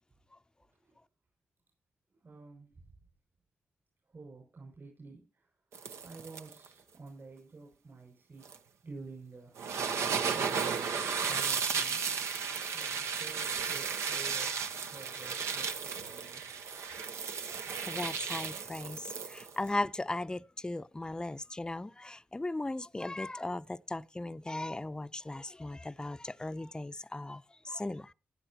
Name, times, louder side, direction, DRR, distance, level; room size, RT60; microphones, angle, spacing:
voice 1, 2.1-2.9 4.0-5.5 6.0-8.5 8.8-9.6 10.3-12.4 12.7-14.6 14.8-16.4, right 3 dB, 50° right, 6.1 m, -51 dB
sound 1, 5.7-6.7 8.4-8.6 9.6-19.7, right 6 dB, 85° right, 0.9 m, -34 dB
voice 2, 17.5-28.1, left 2 dB, 15° left, 0.5 m, -37 dB
16.5 x 10.5 x 2.9 m
cardioid pair, 55°, 5 cm